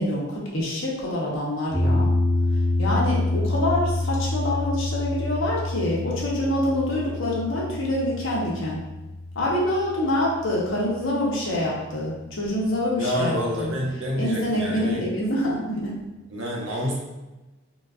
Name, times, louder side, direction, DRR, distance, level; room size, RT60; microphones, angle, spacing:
voice 1, 0.0-2.1 2.8-8.8 9.3-13.7 14.1-15.9, left 1 dB, 65° left, -4 dB, 0.9 m, -26 dB
sound 1, 1.7-11.9, left 2 dB, 5° left, 0.7 m, -27 dB
voice 2, 13.0-15.1 16.3-16.9, equal, 60° right, -3 dB, 0.8 m, -28 dB
4.0 x 2.3 x 2.4 m, 1.1 s
head